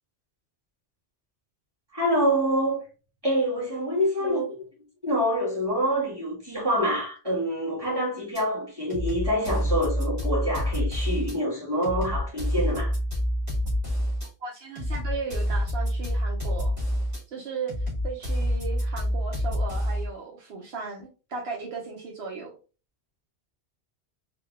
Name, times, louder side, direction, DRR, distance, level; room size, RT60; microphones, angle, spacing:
voice 1, 1.9-2.8 3.2-4.4 5.0-12.9, equal, 20° right, 2.1 m, -26 dB
sound 1, 8.4-8.5 8.9-11.4 11.8-14.3 14.8-17.2 17.7-20.1, equal, 55° right, 1.9 m, -27 dB
voice 2, 14.4-16.7 17.3-17.7 18.0-22.5, right 5 dB, 75° right, 1.0 m, -36 dB
3.9 x 2.3 x 3.3 m
omnidirectional pair, 1.1 m